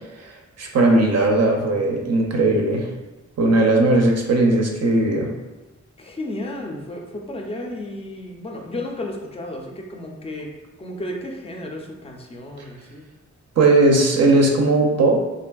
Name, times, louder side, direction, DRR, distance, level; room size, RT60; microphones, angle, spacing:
voice 1, 0.2-2.9 3.4-5.3 13.6-15.2, right 2 dB, 55° right, 1 dB, 0.5 m, -18 dB
voice 2, 6.0-10.5 10.8-13.0, left 1 dB, 20° left, 0 dB, 0.4 m, -33 dB
3.3 x 2.5 x 2.2 m, 1.2 s
wide cardioid pair, 120°, 30 cm